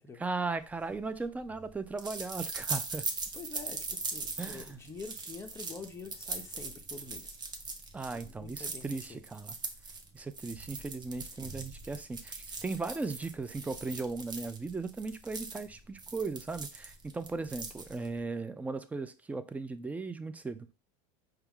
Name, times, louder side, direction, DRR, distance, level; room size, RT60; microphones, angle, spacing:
voice 1, 0.2-3.0 4.4-4.7 7.9-9.5 10.1-12.4 12.6-20.7, right 3 dB, 10° right, 0.3 m, -37 dB
sound 1, 0.8-18.2, right 4 dB, 25° right, 0.7 m, -41 dB
voice 2, 3.3-7.4 8.1-9.2, left 4 dB, 15° left, 0.7 m, -46 dB
4.5 x 2.3 x 3.5 m
supercardioid pair, 115°, 16 cm